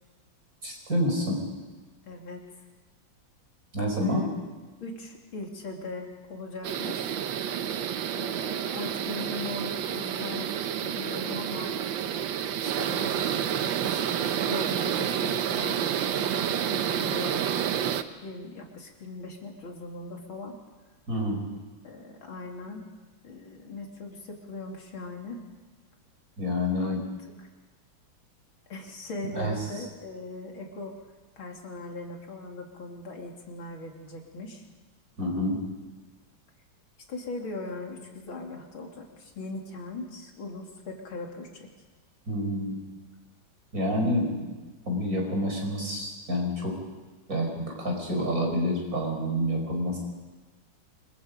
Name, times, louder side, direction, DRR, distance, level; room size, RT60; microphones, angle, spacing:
voice 1, 0.6-1.4 3.7-4.2 21.1-21.5 26.4-27.0 29.4-29.8 35.2-35.6 42.3-42.8 43.7-44.5 44.9-46.7 47.3-50.0, equal, 45° right, 0 dB, 5.7 m, -28 dB
voice 2, 2.1-2.4 4.0-4.4 4.8-7.1 8.2-11.8 12.6-17.7 18.2-20.6 21.8-22.9 23.2-25.4 26.8-27.0 27.4-27.5 28.7-31.0 31.4-34.7 37.1-41.7, left 2 dB, 85° left, 1 dB, 3.6 m, -39 dB
sound 1, 6.6-18.0, right 9 dB, 75° right, 1.6 m, -29 dB
26.0 x 23.0 x 5.2 m, 1.3 s
omnidirectional pair, 2.1 m